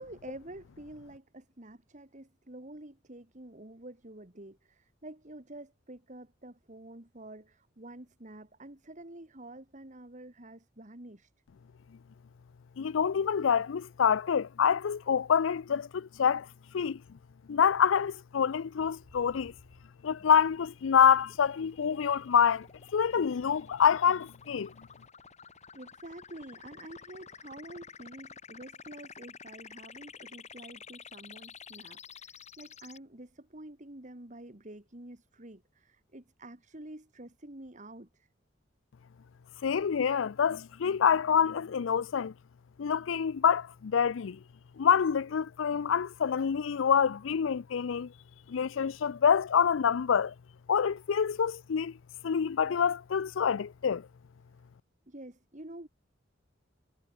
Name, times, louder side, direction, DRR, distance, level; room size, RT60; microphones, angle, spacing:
voice 1, 0.0-11.3 25.7-38.3 55.1-55.9, right 1 dB, 40° right, 2.3 m, -48 dB
voice 2, 12.8-16.5 16.7-17.0 17.5-19.5 20.0-22.7 22.9-24.7 39.6-42.3 42.8-44.4 44.8-48.1 48.5-50.3 50.7-51.9 52.2-54.0, left 7 dB, 90° left, 0.4 m, -26 dB
sound 1, 18.8-33.0, left 6 dB, 35° left, 4.3 m, -51 dB
head